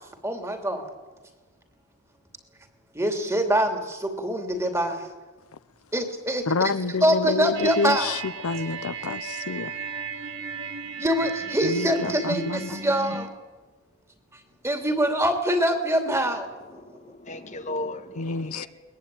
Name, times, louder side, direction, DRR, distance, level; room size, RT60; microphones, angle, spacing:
voice 1, 0.2-0.9 2.9-5.1 5.9-6.7 7.0-8.1 11.0-13.3 14.6-16.5 16.7-17.0, right 1 dB, 15° right, 2.7 m, -24 dB
voice 2, 6.5-9.7 11.6-12.8 18.2-18.7, left 4 dB, 75° left, 0.8 m, -28 dB
sound 1, 7.5-13.3, right 5 dB, 55° right, 2.2 m, -35 dB
voice 3, 16.4-18.7, left 2 dB, 35° left, 1.3 m, -36 dB
22.0 x 20.5 x 8.9 m
head